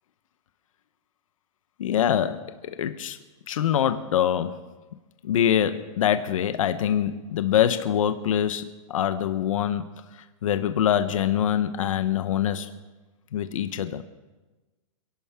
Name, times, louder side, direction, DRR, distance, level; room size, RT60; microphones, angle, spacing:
voice 1, 1.8-3.2 3.5-4.6 5.2-9.8 10.2-12.7 13.3-14.0, left 10 dB, 70° left, 10 dB, 1.0 m, -24 dB
28.0 x 11.5 x 3.6 m, 1.2 s
supercardioid pair, 170°, 17 cm